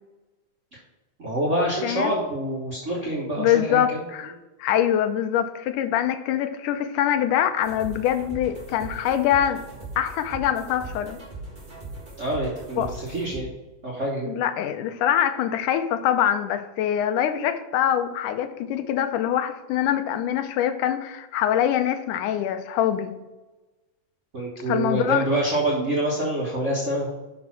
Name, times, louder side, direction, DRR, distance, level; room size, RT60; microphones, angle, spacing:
voice 1, 1.2-4.0 12.2-13.5 13.8-14.3 24.3-27.1, right 1 dB, 60° right, -5 dB, 0.7 m, -26 dB
voice 2, 3.4-4.3 4.6-9.6 10.0-11.2 12.8-12.9 14.3-23.1 24.7-25.3, left 10 dB, 90° left, 8 dB, 2.3 m, -24 dB
sound 1, 7.6-13.4, right 2 dB, 30° right, 0.9 m, -39 dB
6.2 x 5.3 x 5.8 m, 1.1 s
omnidirectional pair, 3.5 m